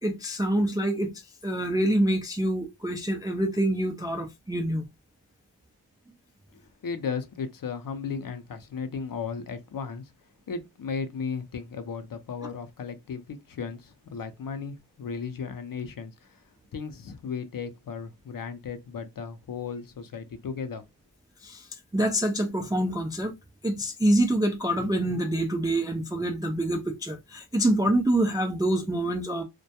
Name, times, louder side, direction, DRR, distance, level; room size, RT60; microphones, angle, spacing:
voice 1, 0.0-1.1 1.4-4.8 21.4-21.7 21.9-23.4 23.6-29.4, right 1 dB, 10° right, 0.3 m, -26 dB
voice 2, 6.5-10.1 10.5-20.8, left 5 dB, 45° left, 0.6 m, -35 dB
2.2 x 2.2 x 2.7 m
cardioid pair, 75°, 49 cm